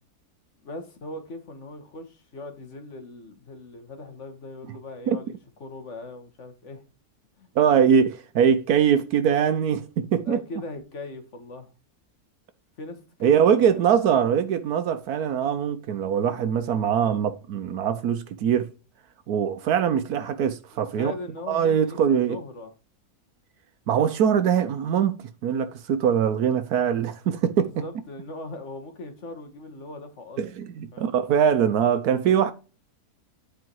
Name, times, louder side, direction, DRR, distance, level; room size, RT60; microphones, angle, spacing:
voice 1, 0.6-5.3 5.6-6.8 7.4-7.9 10.3-11.7 12.8-13.8 14.1-14.3 20.9-22.0 22.3-22.7 27.6-30.4 30.9-31.1, left 2 dB, 50° left, 1.9 m, -39 dB
voice 2, 7.5-10.4 13.2-18.7 19.3-21.1 21.5-22.4 23.9-25.2 25.4-27.8 30.4-32.5, right 8 dB, 80° right, 1.3 m, -22 dB
10.0 x 4.7 x 4.6 m
omnidirectional pair, 1.6 m